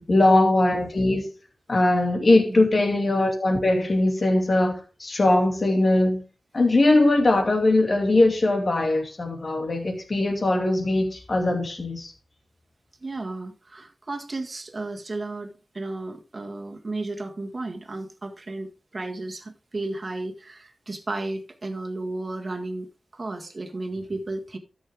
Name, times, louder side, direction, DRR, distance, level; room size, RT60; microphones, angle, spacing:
voice 1, 0.1-1.2 1.7-6.2 6.5-12.1, left 2 dB, 50° left, 2.6 m, -21 dB
voice 2, 13.0-24.6, right 2 dB, 40° right, 1.8 m, -34 dB
13.0 x 6.5 x 3.6 m
wide cardioid pair, 105°, 0 cm